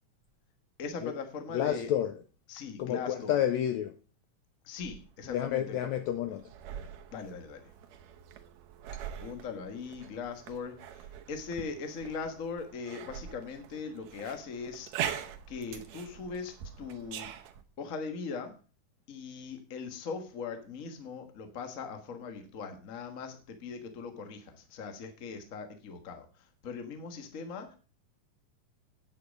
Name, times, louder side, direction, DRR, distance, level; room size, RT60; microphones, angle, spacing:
voice 1, 0.8-1.9 2.5-3.4 4.6-5.9 7.1-7.7 9.2-17.3 17.8-18.5 19.1-27.7, left 5 dB, 50° left, 1.0 m, -40 dB
voice 2, 1.5-2.1 2.8-4.0 5.3-6.4, left 11 dB, 85° left, 1.6 m, -30 dB
sound 1, 4.8-17.6, right 9 dB, 70° right, 1.8 m, -43 dB
8.9 x 8.4 x 5.2 m
omnidirectional pair, 3.9 m